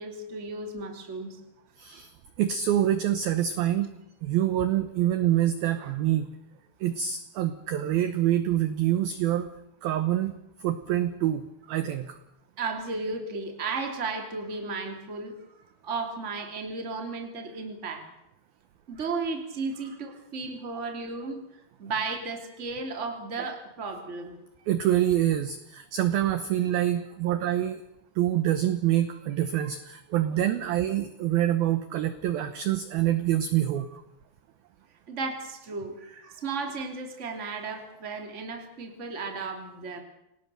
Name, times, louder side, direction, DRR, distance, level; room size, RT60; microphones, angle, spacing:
voice 1, 0.0-1.4 12.6-15.3 15.8-18.1 18.9-21.4 21.8-24.4 30.5-30.7 35.1-40.0, right 4 dB, 25° right, 4 dB, 1.8 m, -34 dB
voice 2, 1.8-2.1 2.4-3.9 4.2-6.3 6.8-9.5 9.8-10.3 10.6-12.2 24.7-27.8 28.2-34.0, right 12 dB, 80° right, 11 dB, 2.1 m, -26 dB
28.5 x 18.5 x 6.8 m, 0.85 s
omnidirectional pair, 5.7 m